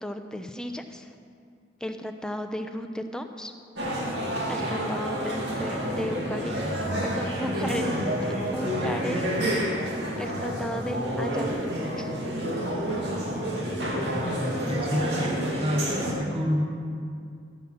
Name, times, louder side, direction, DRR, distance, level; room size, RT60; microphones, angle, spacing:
voice 1, 0.0-1.1 1.8-3.5 4.5-8.2 8.5-9.9 10.2-12.1, equal, 5° left, 6 dB, 0.6 m, -35 dB
sound 1, 3.8-16.1, equal, 75° right, 2.3 m, -29 dB
voice 2, 14.7-16.7, equal, 30° right, 0 dB, 1.7 m, -28 dB
15.0 x 7.5 x 6.4 m, 2.3 s
head